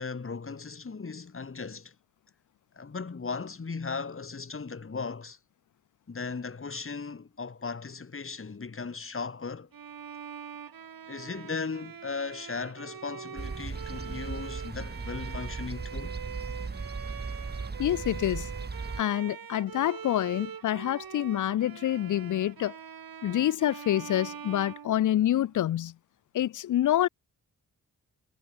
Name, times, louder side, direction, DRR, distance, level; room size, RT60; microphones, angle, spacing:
voice 1, 0.0-1.9 2.7-5.4 6.1-9.7 11.1-16.2, left 4 dB, 35° left, 2.1 m, -37 dB
Bowed string instrument, 9.7-25.6, right 7 dB, 65° right, 3.0 m, -43 dB
sound 1, 13.4-19.0, right 4 dB, 25° right, 1.3 m, -37 dB
voice 2, 17.8-18.5 19.0-22.7 23.2-25.9 26.3-27.1, left 12 dB, 55° left, 0.5 m, -27 dB
cardioid pair, 65°, 38 cm